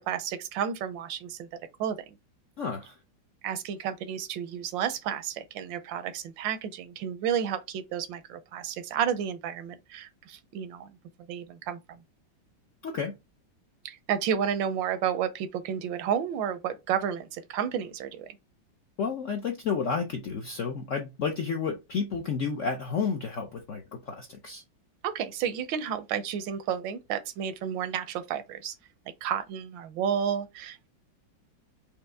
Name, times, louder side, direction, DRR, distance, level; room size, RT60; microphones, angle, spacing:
voice 1, 0.0-1.5 1.8-2.0 3.4-11.0 11.3-12.0 13.8-18.4 25.0-28.7 29.2-30.9, right 8 dB, 80° right, 1.3 m, -31 dB
voice 2, 2.6-3.0 12.8-13.2 19.0-24.6, left 5 dB, 65° left, 0.7 m, -31 dB
5.1 x 2.8 x 3.4 m
omnidirectional pair, 2.1 m